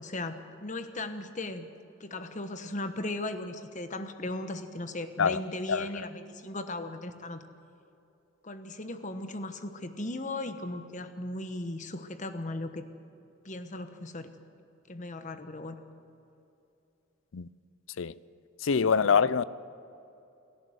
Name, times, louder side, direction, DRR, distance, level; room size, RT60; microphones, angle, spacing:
voice 1, 0.0-1.7 2.0-7.4 8.4-12.8 13.4-14.3 14.9-15.8 18.8-19.2, left 2 dB, 35° left, 1.2 m, -37 dB
voice 2, 18.6-19.4, left 6 dB, 70° left, 0.5 m, -24 dB
28.5 x 12.0 x 8.0 m
head